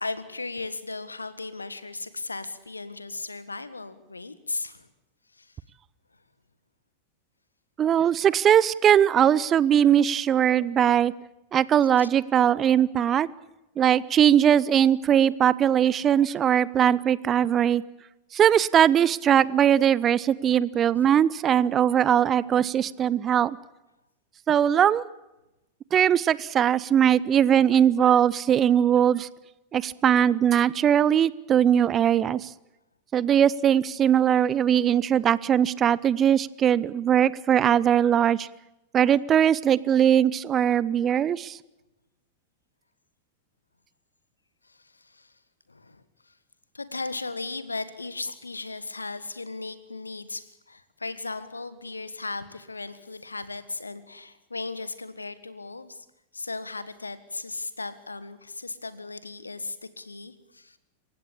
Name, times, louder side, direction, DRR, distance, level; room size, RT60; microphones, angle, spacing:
voice 1, 0.0-4.9 5.3-5.6 11.9-12.1 44.6-45.3 45.7-46.4 46.7-56.1 56.3-60.8, left 3 dB, 80° left, 14 dB, 1.7 m, -36 dB
voice 2, 7.8-11.1 11.5-13.3 13.8-17.8 18.3-23.6 24.5-25.0 25.9-29.3 29.7-32.5 33.1-38.5 38.9-41.6, right 9 dB, 25° right, 21 dB, 0.7 m, -20 dB
27.5 x 15.5 x 8.6 m, 0.95 s
figure-of-eight pair, 90°, 0 cm